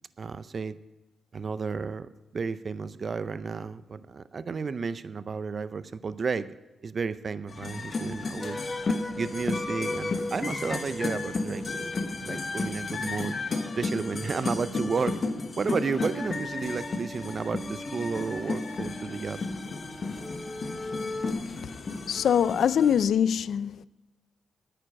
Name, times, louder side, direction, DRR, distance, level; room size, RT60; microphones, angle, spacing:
voice 1, 0.2-0.8 1.3-6.5 6.8-8.6 9.1-13.4 13.8-15.2 15.6-19.4, right 5 dB, 50° right, 0.5 m, -32 dB
sound 1, 7.5-23.1, left 3 dB, 50° left, 1.2 m, -33 dB
sound 2, 8.4-12.3 15.6-21.3, left 1 dB, 10° left, 1.2 m, -39 dB
voice 2, 22.1-23.9, left 8 dB, 75° left, 0.4 m, -23 dB
9.9 x 8.9 x 6.4 m
cardioid pair, 75°, 0 cm